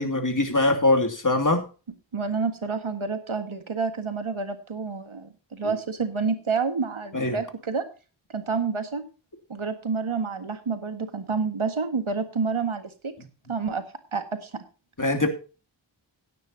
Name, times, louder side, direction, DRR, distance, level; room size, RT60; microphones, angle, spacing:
voice 1, 0.0-1.6 5.6-5.7 7.1-7.4 15.0-15.3, left 2 dB, 40° left, 4 dB, 2.7 m, -22 dB
voice 2, 2.1-7.9 8.3-9.1 9.5-13.1 13.5-13.8 14.1-14.6, right 5 dB, 85° right, 8 dB, 1.8 m, -29 dB
17.0 x 9.5 x 2.8 m, 0.33 s
wide cardioid pair, 45°, 47 cm